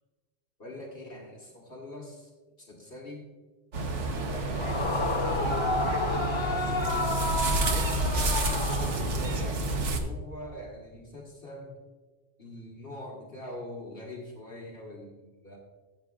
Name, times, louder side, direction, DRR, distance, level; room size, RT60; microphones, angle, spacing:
voice 1, 0.6-2.3 2.6-3.3 4.0-5.6 6.3-7.2 7.7-11.7 12.4-15.6, left 1 dB, 55° left, -1 dB, 1.5 m, -43 dB
sound 1, 3.7-10.0, right 2 dB, 85° right, 1.3 m, -29 dB
Yell / Screaming, 4.5-9.5, left 3 dB, 30° left, 0.6 m, -31 dB
15.5 x 7.8 x 2.3 m, 1.3 s
omnidirectional pair, 1.2 m